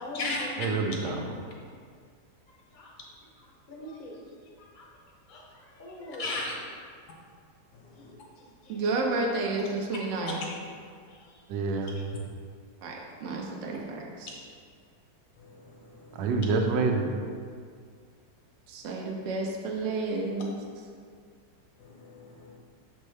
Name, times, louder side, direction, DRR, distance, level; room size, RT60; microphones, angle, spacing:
voice 1, 0.0-0.6 1.0-1.1 2.5-2.9 3.4-4.9 5.3-6.4 7.9-8.8 11.1-12.0, left 1 dB, 40° left, -2 dB, 0.7 m, -45 dB
voice 2, 0.6-1.4 11.5-11.9 16.1-17.1, right 4 dB, 85° right, 3 dB, 1.3 m, -27 dB
voice 3, 6.2-6.5 7.7-8.1 15.4-16.2 21.8-22.5, left 2 dB, 70° left, -2 dB, 1.4 m, -36 dB
voice 4, 8.7-10.4 12.8-14.4 18.7-20.5, right 3 dB, 60° right, -1 dB, 0.8 m, -31 dB
6.5 x 4.5 x 3.2 m, 2.1 s
omnidirectional pair, 1.9 m